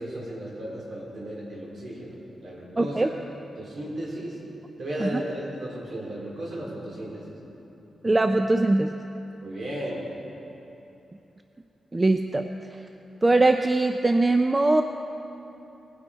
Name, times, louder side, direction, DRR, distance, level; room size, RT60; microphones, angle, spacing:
voice 1, 0.0-3.1 3.6-4.4 4.8-7.2 9.4-10.0, right 1 dB, 55° right, -4 dB, 3.5 m, -35 dB
voice 2, 2.8-3.1 5.0-5.1 8.0-8.9 11.9-12.5 13.2-14.8, right 2 dB, 20° right, 6 dB, 0.4 m, -21 dB
19.5 x 9.8 x 4.2 m, 3.0 s
wide cardioid pair, 130°, 0 cm